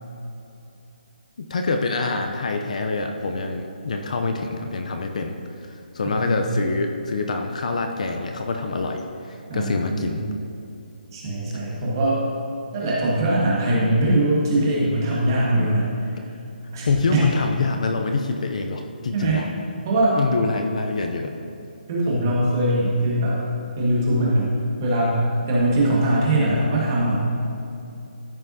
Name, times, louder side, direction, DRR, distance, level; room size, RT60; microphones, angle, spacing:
voice 1, 1.4-10.2 15.5-15.7 16.9-19.5 20.2-21.3, left 3 dB, 45° left, 4 dB, 0.5 m, -26 dB
voice 2, 6.0-6.5 9.5-10.3 11.1-12.2 12.7-15.9 16.7-17.2 19.1-19.4 19.8-20.2 21.9-23.4 23.8-24.5 24.8-25.2 25.5-27.2, right 1 dB, 20° right, -6 dB, 1.6 m, -21 dB
13.5 x 5.6 x 2.7 m, 2.7 s
hypercardioid pair, 175°, 5 cm